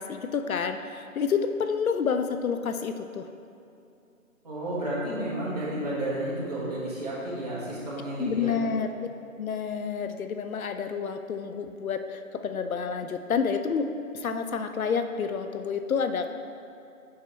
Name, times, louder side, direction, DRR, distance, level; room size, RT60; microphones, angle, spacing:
voice 1, 0.0-3.3 8.2-8.9 9.4-13.9 14.1-16.3, left 6 dB, 75° left, 8 dB, 0.5 m, -29 dB
voice 2, 4.4-8.6, right 1 dB, 30° right, -9 dB, 1.5 m, -32 dB
6.9 x 5.6 x 3.3 m, 2.6 s
hypercardioid pair, 175°, 43 cm